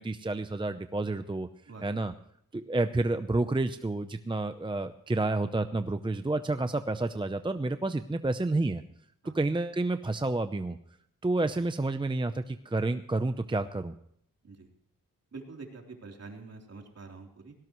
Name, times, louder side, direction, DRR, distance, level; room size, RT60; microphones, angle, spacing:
voice 1, 0.0-1.5 1.8-2.1 2.5-8.8 9.2-10.8 11.2-13.9, right 2 dB, 15° right, 9 dB, 0.7 m, -30 dB
voice 2, 1.7-2.0 9.2-9.4 11.4-11.6 14.4-14.7 15.3-17.5, right 3 dB, 50° right, 1 dB, 3.6 m, -46 dB
18.5 x 17.5 x 3.1 m, 0.67 s
wide cardioid pair, 105°, 34 cm